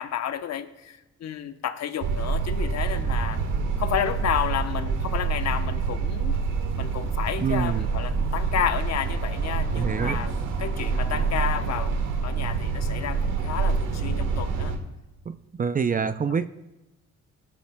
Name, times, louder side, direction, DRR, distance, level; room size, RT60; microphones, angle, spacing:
voice 1, 0.0-3.4 3.8-6.4 6.8-10.3 10.6-11.9 12.2-14.7, left 9 dB, 60° left, 9 dB, 0.9 m, -31 dB
sound 1, 2.0-14.8, right 5 dB, 90° right, 1.5 m, -27 dB
voice 2, 7.4-7.9 9.7-10.2 15.3-16.5, right 6 dB, 30° right, 12 dB, 0.4 m, -26 dB
18.0 x 12.0 x 2.2 m, 1.0 s
cardioid pair, 90°, 30 cm